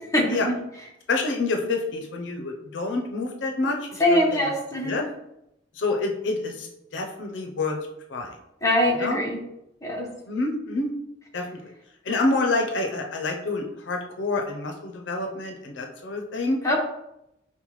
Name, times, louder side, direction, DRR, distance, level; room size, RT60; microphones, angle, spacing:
voice 1, 1.1-4.5 4.8-5.0 5.8-6.7 6.9-7.8 8.1-8.3 8.9-9.2 10.3-10.9 11.3-11.5 12.1-16.6, left 3 dB, 80° left, 3 dB, 0.5 m, -27 dB
voice 2, 4.0-5.0 8.6-9.4 9.8-10.0 16.6-16.8, left 1 dB, 15° left, -2 dB, 0.8 m, -22 dB
5.5 x 2.1 x 3.0 m, 0.82 s
head